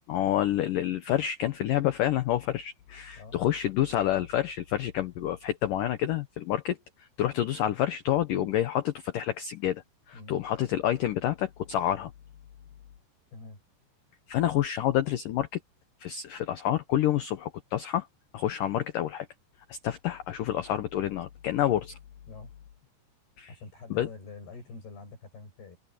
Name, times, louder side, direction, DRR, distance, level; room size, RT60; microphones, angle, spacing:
voice 1, 0.1-12.1 14.3-15.6 16.0-18.1 18.3-19.3 19.7-22.0 23.4-23.5 23.9-24.1, left 12 dB, 85° left, 1.9 m, -28 dB
voice 2, 13.3-13.6 22.3-22.5 23.5-25.8, left 3 dB, 60° left, 10.0 m, -45 dB
open air
omnidirectional pair, 5.2 m